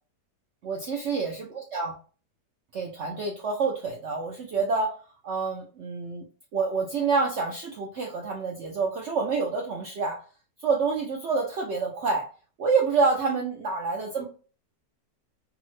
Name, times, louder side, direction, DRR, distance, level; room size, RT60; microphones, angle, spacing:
voice 1, 0.6-1.9 2.7-4.9 5.2-6.2 6.5-10.2 10.6-12.3 12.6-14.3, right 4 dB, 80° right, 0 dB, 0.6 m, -27 dB
3.6 x 2.0 x 3.0 m, 0.37 s
omnidirectional pair, 1.9 m